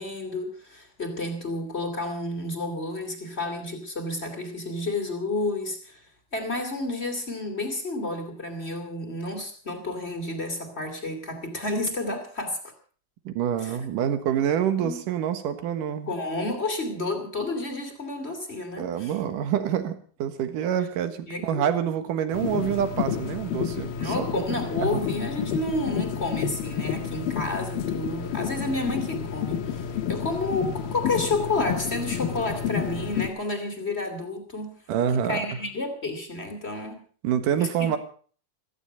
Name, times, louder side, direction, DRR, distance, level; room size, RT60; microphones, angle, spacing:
voice 1, 0.0-6.0 6.3-12.6 13.6-13.9 14.8-15.0 16.1-19.1 21.3-21.6 24.0-34.8 35.1-37.0 37.5-38.0, left 2 dB, 20° left, 4 dB, 2.6 m, -31 dB
voice 2, 13.3-16.1 18.8-24.4 24.8-25.0 34.9-35.5 37.2-38.0, right 9 dB, 70° right, 10 dB, 2.8 m, -27 dB
sound 1, 22.3-33.3, left 8 dB, 85° left, 2.9 m, -30 dB
16.5 x 14.5 x 5.6 m, 0.43 s
omnidirectional pair, 4.1 m